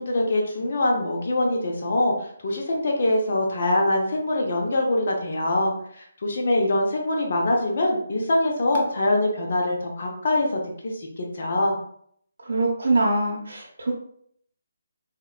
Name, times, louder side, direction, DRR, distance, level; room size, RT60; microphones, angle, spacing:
voice 1, 0.0-11.8, left 1 dB, 55° left, 0 dB, 0.5 m, -24 dB
voice 2, 12.4-13.9, right 2 dB, 65° right, -4 dB, 0.7 m, -23 dB
3.4 x 2.2 x 2.2 m, 0.65 s
figure-of-eight pair, 150°, 0 cm